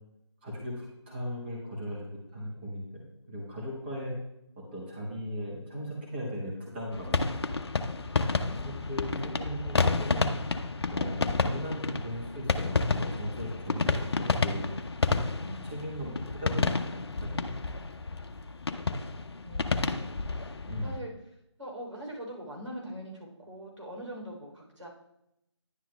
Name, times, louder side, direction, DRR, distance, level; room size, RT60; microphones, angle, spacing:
voice 1, 0.4-4.1 4.7-7.4 8.2-10.3 10.9-14.7 15.6-17.6 20.7-21.0, equal, 20° right, -4 dB, 1.2 m, -38 dB
sound 1, 6.9-21.0, left 4 dB, 60° left, 0.5 m, -30 dB
voice 2, 15.4-15.8 19.4-21.1 21.6-24.9, equal, 90° right, -2 dB, 3.2 m, -43 dB
10.0 x 7.6 x 2.2 m, 0.83 s
figure-of-eight pair, 160°, 15 cm